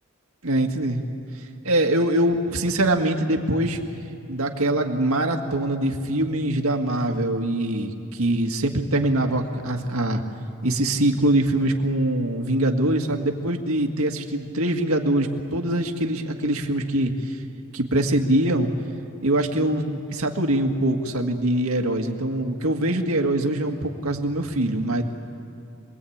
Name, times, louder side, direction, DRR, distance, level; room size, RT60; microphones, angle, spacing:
voice 1, 0.4-1.0 1.6-3.8 4.3-10.2 10.6-17.4 17.7-18.7 19.2-25.0, right 1 dB, 85° right, 3 dB, 1.9 m, -23 dB
27.0 x 21.0 x 8.7 m, 2.5 s
head